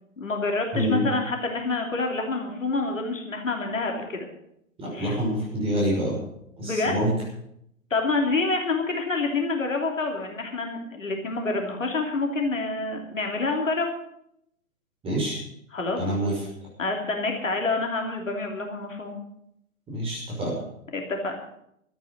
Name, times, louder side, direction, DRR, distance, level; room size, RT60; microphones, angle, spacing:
voice 1, 0.2-4.3 4.9-5.2 6.6-7.0 7.9-13.9 15.7-16.0 16.8-19.2 20.9-21.3, left 3 dB, 70° left, 2 dB, 3.2 m, -27 dB
voice 2, 0.7-1.1 4.8-6.2 6.6-7.1 15.0-15.4 16.0-16.4 19.9-20.5, equal, 15° right, -2 dB, 5.7 m, -26 dB
13.0 x 9.4 x 8.2 m, 0.76 s
figure-of-eight pair, 120°, 41 cm